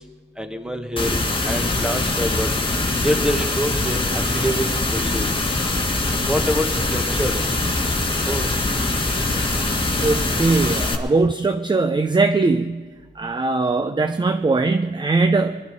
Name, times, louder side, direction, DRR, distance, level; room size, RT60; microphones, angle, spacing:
voice 1, 0.4-1.1 1.4-2.5 3.0-5.2 6.3-7.4 8.3-8.5, equal, 5° right, 6 dB, 1.5 m, -26 dB
sound 1, 1.0-11.0, left 2 dB, 25° left, 1.6 m, -23 dB
voice 2, 10.0-12.9 13.2-15.6, right 3 dB, 25° right, 9 dB, 0.6 m, -20 dB
20.5 x 11.5 x 5.1 m, 1.4 s
cardioid pair, 60°, 20 cm